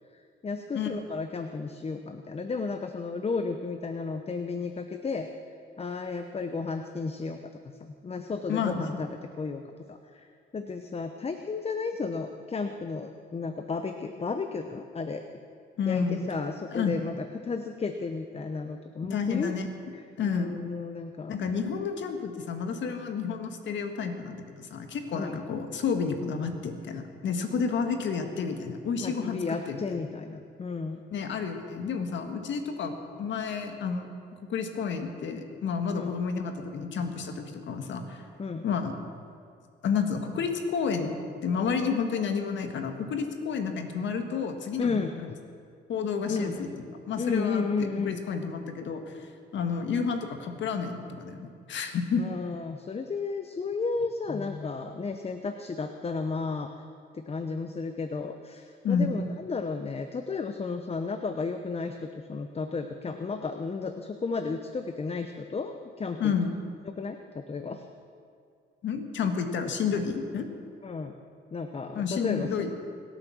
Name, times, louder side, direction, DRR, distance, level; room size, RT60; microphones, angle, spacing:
voice 1, 0.4-5.3 5.8-7.4 7.8-9.6 9.9-10.3 10.5-15.2 15.9-19.6 20.2-21.4 25.1-25.4 29.0-31.0 35.9-36.1 38.4-38.6 44.8-45.4 46.3-46.6 47.2-48.2 52.2-56.7 57.1-66.3 66.9-67.8 70.8-71.2 71.5-72.5, left 4 dB, 30° left, 7 dB, 0.9 m, -33 dB
voice 2, 8.5-8.9 15.8-16.2 16.7-17.0 19.1-19.7 20.2-20.6 21.3-29.8 31.1-34.1 34.5-38.2 38.6-38.9 39.8-41.1 41.4-45.3 45.9-46.7 47.1-52.3 58.8-59.1 66.2-66.5 68.8-70.5 72.0-72.7, left 6 dB, 70° left, 6 dB, 1.7 m, -30 dB
24.0 x 9.1 x 6.3 m, 2.4 s
cardioid pair, 90°, 20 cm